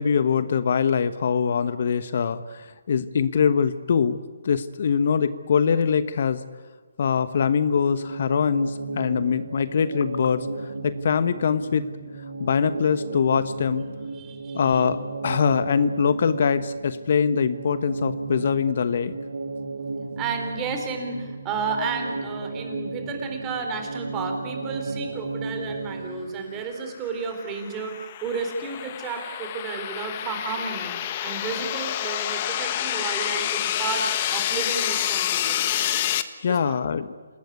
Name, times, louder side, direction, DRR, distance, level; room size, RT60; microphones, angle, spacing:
voice 1, 0.0-4.2 4.4-6.4 7.0-11.9 12.4-13.8 14.5-19.1 36.4-37.1, left 6 dB, 50° left, 13 dB, 1.1 m, -23 dB
sound 1, 7.8-26.6, right 3 dB, 85° right, 3.0 m, -34 dB
voice 2, 14.1-14.6 20.2-27.9 28.2-35.7 36.5-36.8, right 5 dB, 15° right, 4 dB, 4.2 m, -32 dB
sound 2, 27.2-36.2, left 12 dB, 30° left, 1.3 m, -28 dB
27.5 x 19.5 x 9.7 m, 1.5 s
hypercardioid pair, 160°, 0 cm